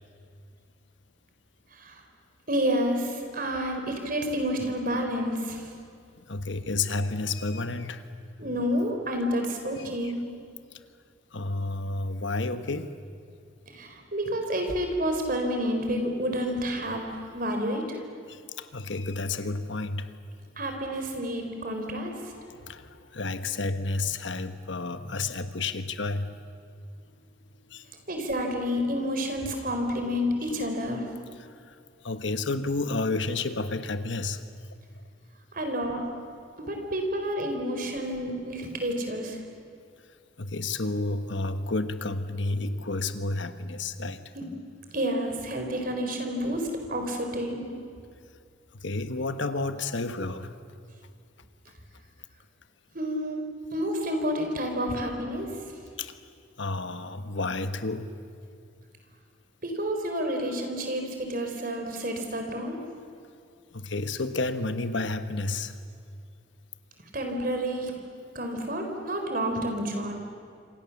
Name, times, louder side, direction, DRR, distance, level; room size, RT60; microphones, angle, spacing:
voice 1, 2.5-5.7 8.4-10.2 13.7-17.0 17.3-18.0 20.6-22.1 28.1-31.1 35.5-36.1 36.6-39.4 44.3-44.5 44.9-47.7 52.9-53.4 53.7-55.5 59.6-62.8 67.1-67.9 68.3-70.1, equal, 45° right, 4 dB, 4.1 m, -29 dB
voice 2, 6.2-8.1 11.3-13.0 18.3-20.1 22.3-26.3 27.7-27.9 31.7-31.8 32.0-34.4 40.4-44.2 48.7-50.6 56.0-56.2 56.6-58.1 63.7-65.8, left 3 dB, 70° left, 10 dB, 1.3 m, -31 dB
27.0 x 26.5 x 7.2 m, 2.4 s
head